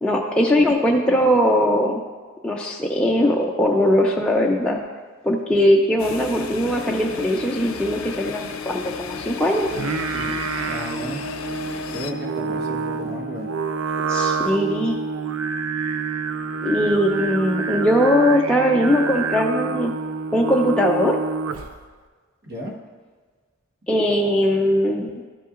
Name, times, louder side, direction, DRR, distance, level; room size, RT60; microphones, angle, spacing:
voice 1, 0.0-2.0 2.4-4.8 5.2-9.7 14.1-15.0 16.6-19.9 20.3-21.2 23.9-25.1, equal, 5° left, -2 dB, 0.4 m, -20 dB
sound 1, 6.0-12.1, left 5 dB, 75° left, 0.5 m, -33 dB
Singing, 9.7-21.9, right 4 dB, 90° right, 0.5 m, -27 dB
voice 2, 10.7-11.3 11.9-13.5 22.4-22.7, equal, 50° right, 0 dB, 1.3 m, -33 dB
12.5 x 5.6 x 2.5 m, 1.5 s
head